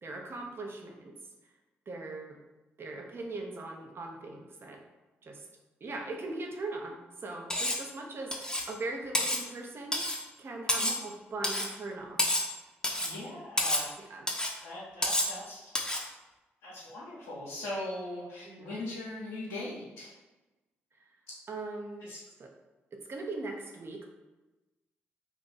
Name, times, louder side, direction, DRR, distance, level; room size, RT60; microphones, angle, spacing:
voice 1, 0.0-1.1 1.9-2.4 2.8-4.8 5.2-5.4 5.8-10.0 10.4-12.3 14.0-14.3 18.4-18.9 21.5-22.1 22.4-22.5 22.9-24.1, right 2 dB, 45° right, 1 dB, 0.7 m, -40 dB
Cutlery silverware, 7.5-7.9 8.3-8.7 9.1-9.4 9.9-10.2 10.7-11.0 11.4-11.7 12.2-12.5 12.8-13.2 13.6-13.9 14.3-14.6 15.0-15.4 15.8-16.1, left 1 dB, 15° left, 0.6 m, -29 dB
voice 2, 13.0-13.9 14.6-15.7 16.6-20.1 22.0-22.2, left 1 dB, 80° left, -8 dB, 0.8 m, -40 dB
2.5 x 2.5 x 3.9 m, 1.1 s
hypercardioid pair, 45°, 5 cm